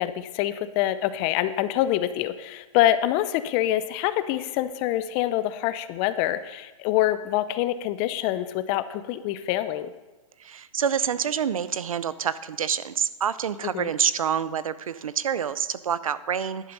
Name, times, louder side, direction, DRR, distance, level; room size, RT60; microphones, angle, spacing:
voice 1, 0.0-9.9 13.7-13.9, left 13 dB, 30° left, 13 dB, 0.6 m, -25 dB
voice 2, 10.4-16.7, right 8 dB, 85° right, 16 dB, 0.6 m, -27 dB
11.0 x 11.0 x 4.0 m, 1.2 s
hypercardioid pair, 135°, 17 cm